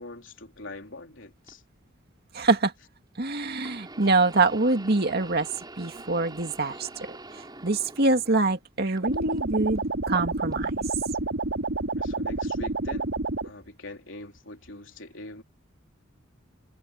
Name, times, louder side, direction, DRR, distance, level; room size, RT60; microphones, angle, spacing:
voice 1, 0.0-1.6 12.0-13.1 13.4-15.4, left 2 dB, 65° left, 4.1 m, -43 dB
sound 1, 1.5-1.6 3.6-8.6 9.0-9.8 10.5-10.7 11.6-11.7, right 2 dB, 20° right, 4.5 m, -45 dB
voice 2, 2.3-2.7 3.2-5.5 5.8-9.8 10.1-10.7, right 3 dB, 55° right, 2.2 m, -25 dB
sound 2, 9.0-13.5, right 3 dB, 85° right, 3.0 m, -29 dB
head